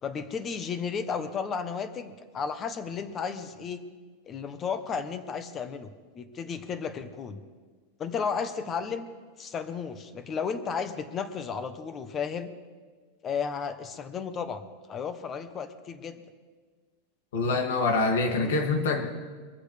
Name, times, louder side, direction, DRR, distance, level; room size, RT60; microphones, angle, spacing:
voice 1, 0.0-3.8 4.3-7.4 8.0-9.1 9.4-12.5 13.2-14.6 14.9-16.2 18.2-18.6, left 6 dB, 20° left, 10 dB, 0.9 m, -33 dB
voice 2, 17.3-19.0, left 3 dB, 90° left, 3 dB, 2.3 m, -25 dB
23.0 x 15.0 x 3.4 m, 1.5 s
supercardioid pair, 165°, 0 cm